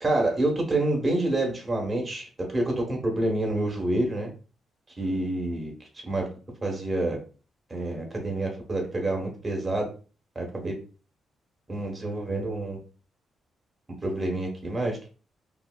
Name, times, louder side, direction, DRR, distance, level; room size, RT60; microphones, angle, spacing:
voice 1, 0.0-4.3 5.0-5.7 6.1-6.3 6.6-7.2 7.7-9.9 10.3-10.7 11.7-12.8 14.0-15.1, right 2 dB, 20° right, 0 dB, 1.2 m, -27 dB
5.4 x 2.0 x 2.3 m, 0.37 s
cardioid pair, 120°, 0 cm